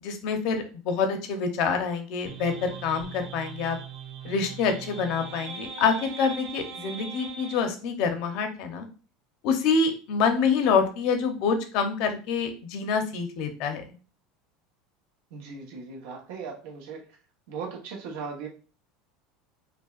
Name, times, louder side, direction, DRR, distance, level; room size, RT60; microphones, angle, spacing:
voice 1, 0.0-3.8 4.2-8.8 9.4-13.8, left 5 dB, 55° left, 6 dB, 0.7 m, -26 dB
sound 1, 2.3-7.7, right 6 dB, 45° right, 1.6 m, -40 dB
voice 2, 15.3-17.1 17.5-18.5, right 5 dB, 70° right, 0 dB, 1.0 m, -38 dB
5.2 x 2.2 x 2.4 m, 0.36 s
supercardioid pair, 160°, 0 cm